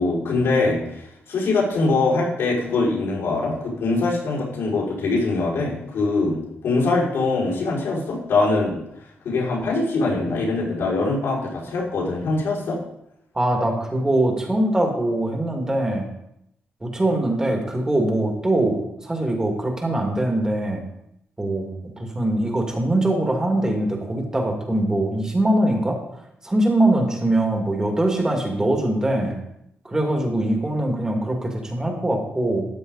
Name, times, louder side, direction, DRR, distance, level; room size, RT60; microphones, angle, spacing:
voice 1, 0.0-8.8 9.2-12.8, left 3 dB, 85° left, -7 dB, 5.6 m, -23 dB
voice 2, 13.3-16.1 16.8-20.8 21.4-26.0 26.4-29.4 29.8-32.7, right 1 dB, 15° right, 1 dB, 2.3 m, -22 dB
13.5 x 9.8 x 4.1 m, 0.79 s
wide cardioid pair, 150°, 4 cm